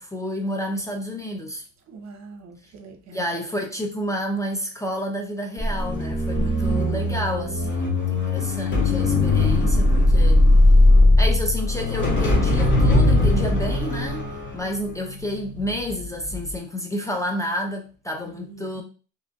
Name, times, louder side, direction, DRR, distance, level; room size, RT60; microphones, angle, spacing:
voice 1, 0.0-1.6 3.1-10.4 11.2-18.8, equal, 10° left, 0.6 m, -30 dB
voice 2, 1.9-3.2 6.4-7.6 18.5-18.7, right 4 dB, 55° right, 0.8 m, -38 dB
sound 1, 5.6-15.9 16.2-16.5, left 2 dB, 35° left, 1.2 m, -19 dB
3.0 x 2.5 x 2.3 m
supercardioid pair, 70°, 33 cm